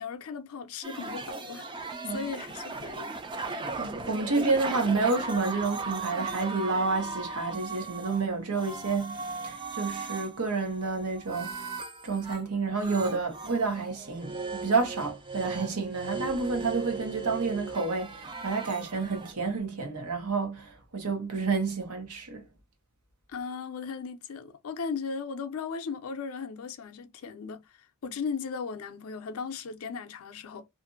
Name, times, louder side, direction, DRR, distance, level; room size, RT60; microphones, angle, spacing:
voice 1, 0.0-3.2 23.3-30.6, left 5 dB, 75° left, 0.5 m, -37 dB
sound 1, 0.8-8.3 8.5-12.4 12.8-19.3, right 3 dB, 20° right, 0.3 m, -38 dB
voice 2, 3.8-11.6 12.0-22.5, right 4 dB, 85° right, 0.9 m, -29 dB
2.6 x 2.5 x 2.5 m
head